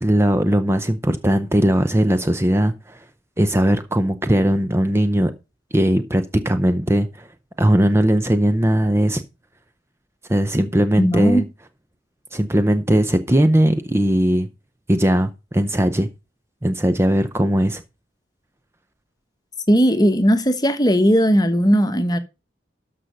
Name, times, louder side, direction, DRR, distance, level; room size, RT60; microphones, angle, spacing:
voice 1, 0.0-3.0 3.4-5.3 5.7-7.3 7.6-9.2 10.3-11.4 12.3-14.5 14.9-16.1 16.6-17.8, right 1 dB, 15° right, 0.7 m, -19 dB
voice 2, 11.0-11.4 19.7-22.2, equal, 20° left, 1.2 m, -17 dB
13.0 x 5.8 x 5.2 m
head